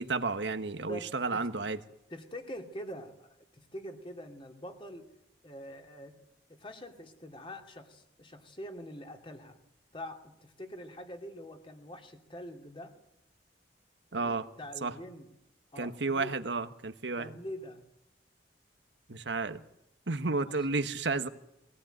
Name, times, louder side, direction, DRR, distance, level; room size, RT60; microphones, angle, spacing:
voice 1, 0.0-1.8 14.1-14.5 14.8-14.9 15.8-17.3 19.1-19.6 20.1-21.3, right 3 dB, 85° right, 10 dB, 1.3 m, -32 dB
voice 2, 0.9-1.4 2.1-3.3 3.7-5.1 5.4-6.1 6.5-9.6 9.9-12.9 14.1-15.3 15.7-16.4 17.2-17.8 20.5-20.7, equal, 30° left, 4 dB, 2.7 m, -44 dB
22.5 x 18.0 x 9.2 m, 0.85 s
head